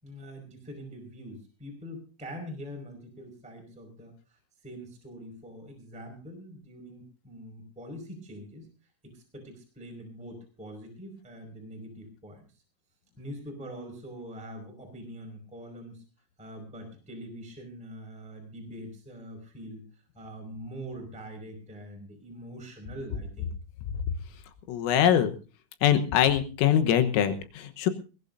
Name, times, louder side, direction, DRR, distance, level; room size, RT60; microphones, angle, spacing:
voice 1, 0.0-8.7 9.1-12.4 13.2-16.0 16.4-19.8 20.1-23.5, equal, ahead, 2 dB, 4.7 m, -43 dB
voice 2, 24.7-25.3 25.8-27.9, left 10 dB, 85° left, 9 dB, 3.8 m, -23 dB
21.5 x 18.5 x 2.7 m, 0.36 s
omnidirectional pair, 5.7 m